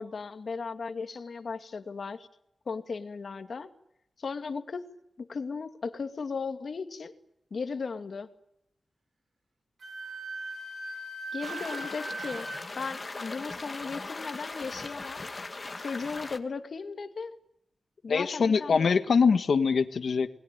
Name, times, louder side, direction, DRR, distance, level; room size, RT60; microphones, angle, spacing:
voice 1, 0.0-2.3 2.7-3.7 4.2-4.8 5.2-7.1 7.5-8.3 11.3-12.5 12.8-15.3 15.8-17.4 18.0-18.9, left 4 dB, 65° left, 8 dB, 2.4 m, -36 dB
Wind instrument woodwind instrument, 9.8-12.6, right 2 dB, 70° right, 7.6 m, -39 dB
sound 1, 11.4-16.4, left 3 dB, 35° left, 2.1 m, -39 dB
voice 2, 18.1-20.3, left 5 dB, 85° left, 10 dB, 1.5 m, -23 dB
29.0 x 21.0 x 9.3 m, 0.80 s
wide cardioid pair, 135°, 0 cm